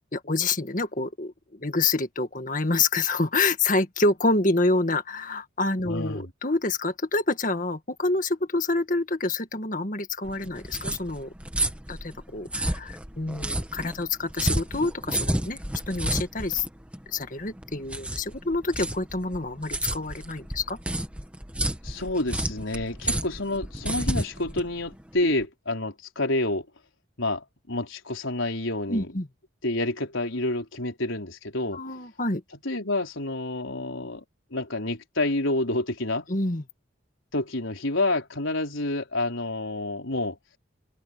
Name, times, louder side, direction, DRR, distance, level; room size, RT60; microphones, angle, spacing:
voice 1, 0.1-11.3 11.9-15.6 15.9-16.6 17.1-20.8 25.2-25.3 28.9-29.3 31.7-32.4 36.3-36.6, left 3 dB, 40° left, 1.8 m, -27 dB
voice 2, 5.9-6.3 21.8-26.7 27.2-29.1 29.6-31.8 32.6-34.2 34.5-36.3 37.3-40.4, left 2 dB, 75° left, 4.4 m, -28 dB
sound 1, 10.2-25.4, right 1 dB, 5° right, 1.6 m, -31 dB
head